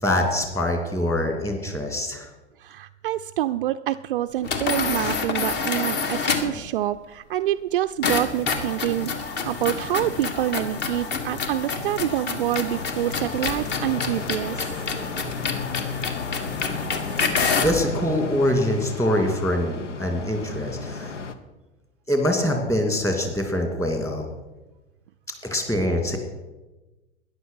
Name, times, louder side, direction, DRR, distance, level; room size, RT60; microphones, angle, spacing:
voice 1, 0.0-2.3 17.6-21.2 22.1-24.3 25.4-26.2, left 1 dB, 10° left, 3 dB, 2.6 m, -24 dB
voice 2, 2.6-14.7, right 13 dB, 50° right, 10 dB, 0.5 m, -27 dB
sound 1, 4.4-6.6 8.0-17.8, left 5 dB, 30° left, 1.7 m, -28 dB
sound 2, 12.7-21.3, left 4 dB, 75° left, 1.2 m, -33 dB
13.5 x 10.5 x 5.7 m, 1.1 s
figure-of-eight pair, 100°, 36 cm